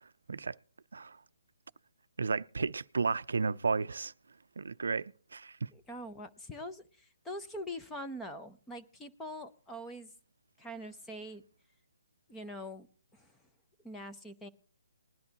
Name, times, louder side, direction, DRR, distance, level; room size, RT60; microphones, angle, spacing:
voice 1, 2.2-4.1 4.6-5.7, right 4 dB, 85° right, 0.5 m, -33 dB
voice 2, 5.7-10.1 10.6-11.4 12.3-13.4 13.8-14.5, equal, 5° left, 0.6 m, -44 dB
20.0 x 11.0 x 2.9 m
hypercardioid pair, 170°, 0 cm